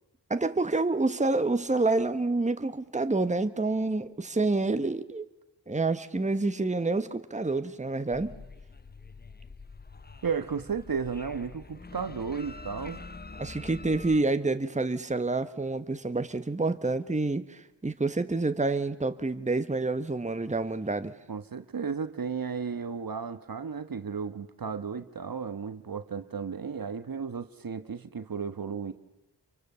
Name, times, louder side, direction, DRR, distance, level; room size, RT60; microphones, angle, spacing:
voice 1, 0.3-5.2 5.7-8.4 13.4-21.1, right 3 dB, 15° right, 1.3 m, -28 dB
sound 1, 8.1-14.2, left 3 dB, 20° left, 0.9 m, -45 dB
voice 2, 10.2-13.0 21.3-28.9, right 6 dB, 50° right, 1.4 m, -34 dB
28.5 x 23.5 x 6.9 m
cardioid pair, 40°, 43 cm